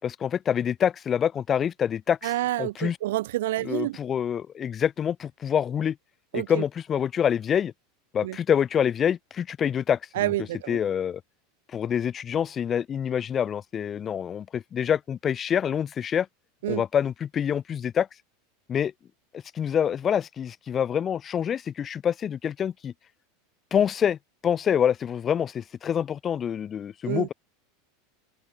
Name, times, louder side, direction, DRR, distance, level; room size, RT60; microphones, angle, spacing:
voice 1, 0.0-2.3 2.6-3.0 3.6-6.0 6.3-7.7 8.1-10.3 10.7-11.2 11.7-16.3 16.7-18.1 18.7-18.9 19.5-22.9 23.7-27.3, left 8 dB, 30° left, 2.8 m, -26 dB
voice 2, 2.2-4.0 6.3-6.6 8.2-8.4 10.1-10.8 16.6-16.8 27.1-27.3, right 16 dB, 70° right, 1.2 m, -28 dB
hypercardioid pair, 85°, 0 cm